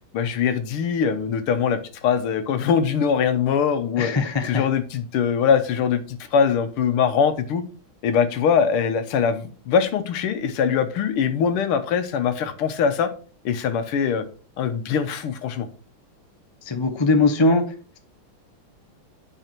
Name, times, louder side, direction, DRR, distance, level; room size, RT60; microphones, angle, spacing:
voice 1, 0.1-4.1 4.4-7.6 8.0-13.1 13.5-14.3 14.6-15.7, left 7 dB, 85° left, 9 dB, 1.8 m, -22 dB
voice 2, 4.0-4.6 16.7-17.6, left 3 dB, 30° left, 6 dB, 0.5 m, -20 dB
9.0 x 4.8 x 4.4 m, 0.39 s
omnidirectional pair, 2.4 m